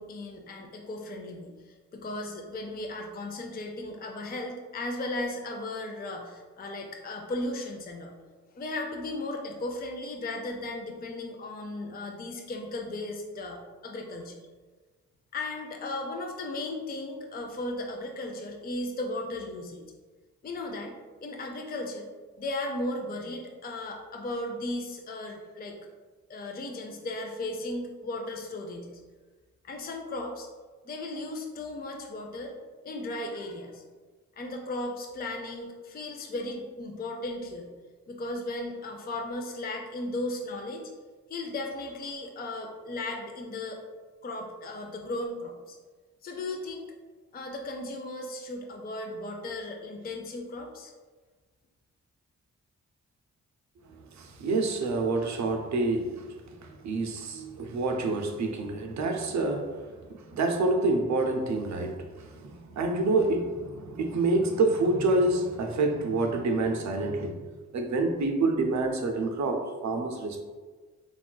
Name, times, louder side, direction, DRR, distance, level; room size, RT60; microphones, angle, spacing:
voice 1, 0.0-8.1 8.5-14.4 15.3-19.8 20.4-20.9 21.2-22.1 22.4-25.8 26.3-28.9 29.6-30.5 30.8-32.6 32.8-33.8 34.4-37.7 38.1-40.9 41.3-43.8 44.2-45.8 46.2-46.9 47.3-50.9, left 2 dB, 30° left, 2 dB, 0.5 m, -36 dB
voice 2, 54.1-56.3 56.6-67.4 67.7-70.5, right 2 dB, 55° right, 4 dB, 0.6 m, -27 dB
3.6 x 2.4 x 2.2 m, 1.4 s
supercardioid pair, 40°, 34 cm